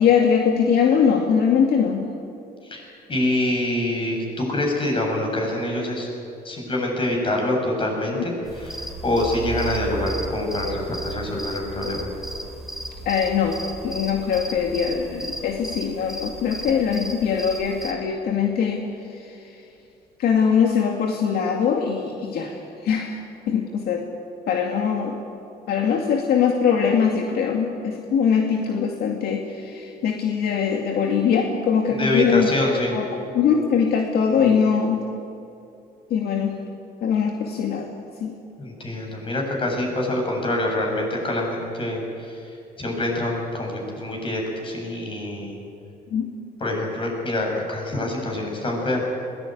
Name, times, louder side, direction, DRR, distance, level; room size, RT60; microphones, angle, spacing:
voice 1, 0.0-2.1 13.1-13.6 13.8-19.4 20.2-24.0 24.5-25.2 25.7-32.5 32.9-33.0 33.3-35.0 36.1-36.6 37.0-37.9 38.2-38.3 46.1-46.3, left 7 dB, 65° left, 2 dB, 2.3 m, -22 dB
voice 2, 2.6-6.1 6.4-12.1 32.0-32.9 38.6-45.6 46.6-49.0, left 1 dB, 30° left, 0 dB, 7.9 m, -25 dB
sound 1, 8.4-17.9, right 2 dB, ahead, 3.5 m, -34 dB
21.5 x 19.5 x 9.4 m, 2.7 s
cardioid pair, 110°, 17 cm